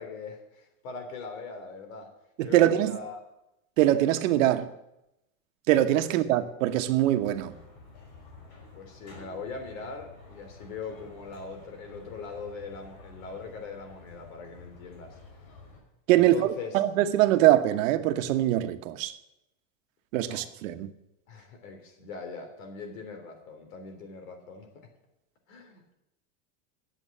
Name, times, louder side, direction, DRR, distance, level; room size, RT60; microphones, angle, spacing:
voice 1, 0.0-2.1 2.4-3.2 6.0-6.1 8.7-15.2 16.1-16.8 17.3-17.4 20.2-20.4 21.3-24.9 25.5-25.8, left 4 dB, 90° left, 3.5 m, -41 dB
voice 2, 2.4-2.9 3.8-4.7 5.7-7.5 16.1-19.1 20.1-20.9, right 13 dB, 80° right, 1.2 m, -23 dB
sound 1, 7.2-15.8, left 4 dB, 55° left, 5.5 m, -50 dB
11.0 x 7.9 x 8.5 m
supercardioid pair, 160°, 39 cm